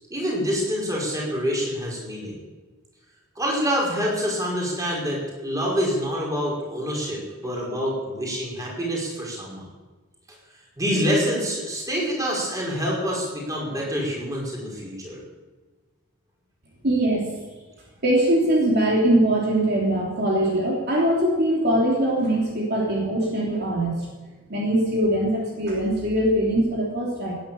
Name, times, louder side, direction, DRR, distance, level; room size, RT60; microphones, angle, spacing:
voice 1, 0.1-2.4 3.4-9.6 10.8-15.2, equal, 15° right, -3 dB, 5.2 m, -26 dB
voice 2, 16.8-17.3 18.0-23.9 24.5-27.3, right 1 dB, 50° right, -3 dB, 3.2 m, -22 dB
18.5 x 10.5 x 7.1 m, 1.3 s
head